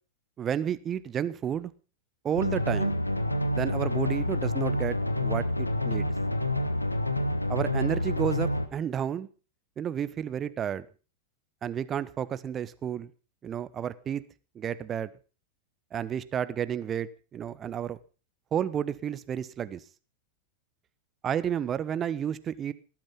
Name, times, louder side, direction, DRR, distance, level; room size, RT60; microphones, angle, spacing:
voice 1, 0.4-1.7 2.2-3.0 3.5-6.1 7.5-9.3 9.8-10.9 11.6-13.1 13.4-14.2 14.5-15.1 15.9-18.0 18.5-19.8 21.2-22.7, right 9 dB, 25° right, 1.1 m, -31 dB
sound 1, 2.3-8.7, left 1 dB, 85° left, 1.6 m, -28 dB
19.0 x 12.5 x 5.6 m
figure-of-eight pair, 90°, 0 cm